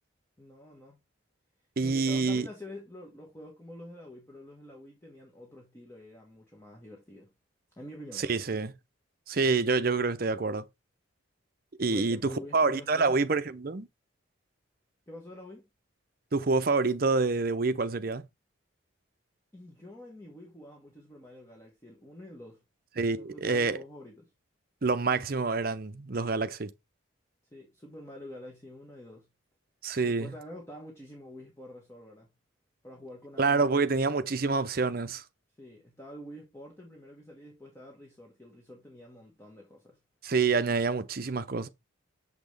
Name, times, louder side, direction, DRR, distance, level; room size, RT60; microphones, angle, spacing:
voice 1, 0.4-1.0 1.8-7.3 7.8-8.3 11.9-13.2 15.1-15.6 19.5-22.6 23.1-24.3 27.5-29.3 30.0-32.3 32.8-33.8 35.6-40.0, left 1 dB, 15° left, 1.4 m, -47 dB
voice 2, 1.8-2.5 8.2-8.7 9.3-10.6 11.8-13.9 16.3-18.2 23.0-23.8 24.8-26.7 29.8-30.3 33.4-35.2 40.2-41.7, right 4 dB, 45° right, 0.6 m, -27 dB
7.1 x 6.0 x 3.4 m
head